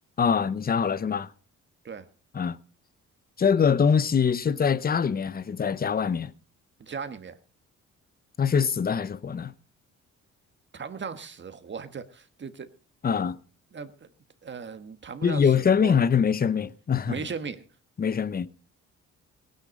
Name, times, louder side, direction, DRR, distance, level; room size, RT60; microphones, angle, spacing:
voice 1, 0.2-1.3 2.3-2.6 3.4-6.3 8.4-9.5 13.0-13.4 15.2-17.2 18.0-18.5, left 6 dB, 30° left, 0.8 m, -23 dB
voice 2, 6.8-7.3 10.7-12.7 13.2-13.3 13.7-14.1 14.4-15.9 17.1-17.6, right 5 dB, 40° right, 1.4 m, -37 dB
18.5 x 9.7 x 5.3 m
cardioid pair, 90°, 30 cm